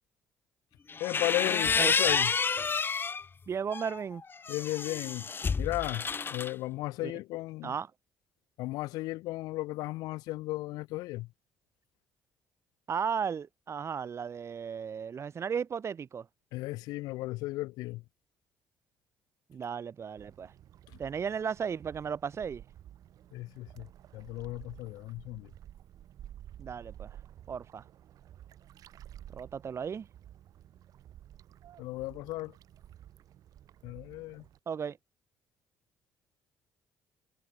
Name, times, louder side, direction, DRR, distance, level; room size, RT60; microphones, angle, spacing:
sound 1, 0.9-3.2 3.7-6.5, left 5 dB, 35° left, 1.4 m, -29 dB
voice 1, 1.0-2.3 4.5-5.3 5.6-7.7 8.6-11.3 16.5-18.0 20.9-21.0 23.3-23.9 24.1-25.5 31.8-32.5 33.8-34.4, left 19 dB, 80° left, 0.9 m, -35 dB
voice 2, 3.5-4.2 7.0-7.1 7.6-7.9 12.9-16.3 19.5-20.5 21.0-22.6 26.6-27.2 27.5-27.8 29.3-30.1 34.7-35.0, right 7 dB, 45° right, 2.9 m, -35 dB
sound 2, 20.2-34.6, right 11 dB, 65° right, 5.6 m, -52 dB
supercardioid pair, 75°, 7 cm